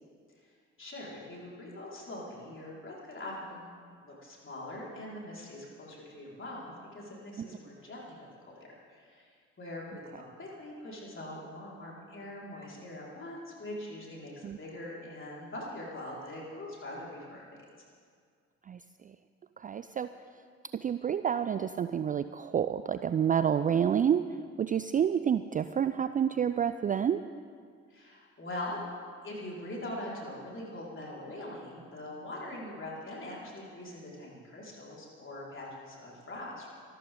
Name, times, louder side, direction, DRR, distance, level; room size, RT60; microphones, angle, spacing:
voice 1, 0.8-3.7 4.0-9.3 9.6-17.4 27.9-28.8 29.2-36.7, left 1 dB, 35° left, -5 dB, 5.1 m, -42 dB
voice 2, 19.6-20.1 20.8-24.3 24.6-27.2, right 8 dB, 25° right, 12 dB, 0.4 m, -28 dB
24.5 x 13.5 x 3.9 m, 2.1 s
figure-of-eight pair, 40°, 37 cm